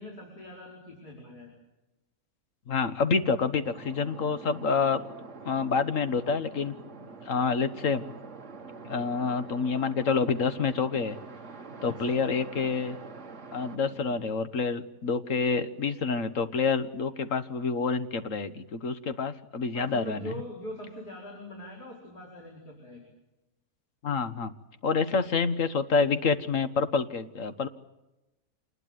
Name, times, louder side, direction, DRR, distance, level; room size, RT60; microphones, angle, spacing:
voice 1, 0.0-1.5 11.8-12.2 19.7-23.0, equal, 80° left, -2 dB, 5.8 m, -42 dB
voice 2, 2.7-5.0 5.4-6.7 7.3-8.0 8.8-11.1 11.8-13.0 13.5-20.3 24.0-24.5 24.8-27.7, left 5 dB, 55° left, 11 dB, 1.6 m, -27 dB
sound 1, 3.7-14.2, right 4 dB, 50° right, 1.6 m, -45 dB
26.5 x 20.5 x 9.3 m, 0.96 s
omnidirectional pair, 1.7 m